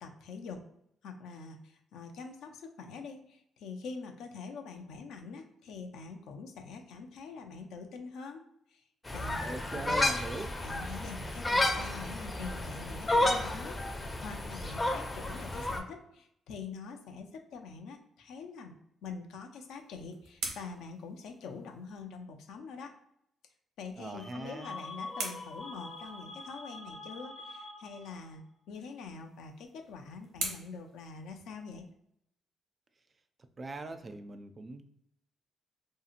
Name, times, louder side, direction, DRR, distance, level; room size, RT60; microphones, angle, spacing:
voice 1, 0.0-0.6 1.0-8.4 8.7-8.8 9.1-10.0 10.6-22.9 23.8-31.9, left 4 dB, 80° left, 4 dB, 0.5 m, -45 dB
sound 1, 9.1-15.8, left 1 dB, 20° left, 0.5 m, -32 dB
voice 2, 9.4-10.5 24.0-24.8 33.6-34.9, right 3 dB, 35° right, 9 dB, 0.3 m, -41 dB
sound 2, 19.5-22.0 24.1-26.5 28.8-31.9, right 3 dB, 85° right, 0.8 m, -44 dB
sound 3, 24.1-28.3, left 2 dB, 50° left, 0.9 m, -45 dB
2.8 x 2.7 x 2.5 m, 0.76 s
cardioid pair, 90°, 0 cm